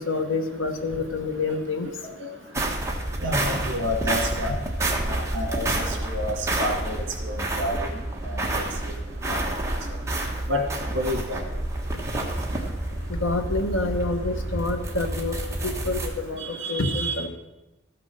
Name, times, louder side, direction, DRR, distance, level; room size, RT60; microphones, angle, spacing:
voice 1, 0.1-1.9 13.2-15.3 15.6-16.0 16.2-16.4 16.7-17.3, left 3 dB, 75° left, 6 dB, 1.2 m, -27 dB
sound 1, 2.5-16.1, right 1 dB, 15° right, 1.2 m, -29 dB
voice 2, 3.2-4.6 5.1-7.8 8.2-8.4 9.3-9.4 10.5-10.6 10.9-11.4 16.6-17.2, equal, 60° right, 3 dB, 2.3 m, -29 dB
13.0 x 6.0 x 6.4 m, 1.0 s
head